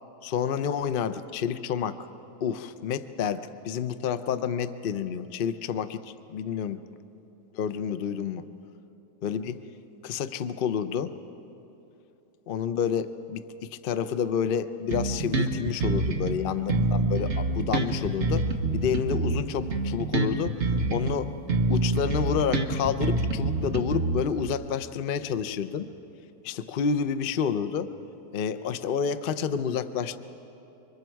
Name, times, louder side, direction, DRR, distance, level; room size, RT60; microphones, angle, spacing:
voice 1, 0.2-2.0 2.4-6.8 7.5-8.4 9.2-9.6 10.0-11.1 12.5-20.6 20.9-21.3 21.7-25.9 26.4-27.9 28.3-30.2, left 7 dB, 75° left, 12 dB, 0.5 m, -29 dB
Bass guitar, 14.9-16.4 16.7-21.2 21.5-24.5, right 3 dB, 45° right, 1.4 m, -26 dB
28.0 x 24.5 x 4.6 m, 3.0 s
omnidirectional pair, 1.8 m